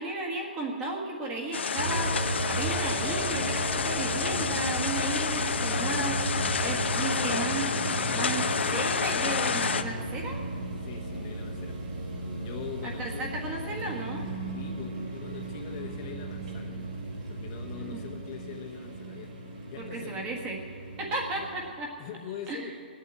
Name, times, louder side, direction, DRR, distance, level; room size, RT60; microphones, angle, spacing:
voice 1, 0.0-7.8 8.1-8.4 8.7-10.4 12.8-14.3 17.9-18.0 19.8-20.6 21.0-22.0 22.5-22.7, right 2 dB, 15° right, 0 dB, 1.6 m, -34 dB
sound 1, 1.5-9.8, left 6 dB, 85° left, 0.8 m, -29 dB
sound 2, 1.8-21.7, right 2 dB, 45° right, 4.9 m, -35 dB
voice 2, 7.6-9.1 10.8-11.8 12.4-13.3 14.5-16.8 17.3-19.3 19.7-20.2 21.4-21.5 22.0-22.8, left 8 dB, 30° left, 2 dB, 1.0 m, -43 dB
19.5 x 8.3 x 8.1 m, 2.4 s
hypercardioid pair, 165°, 6 cm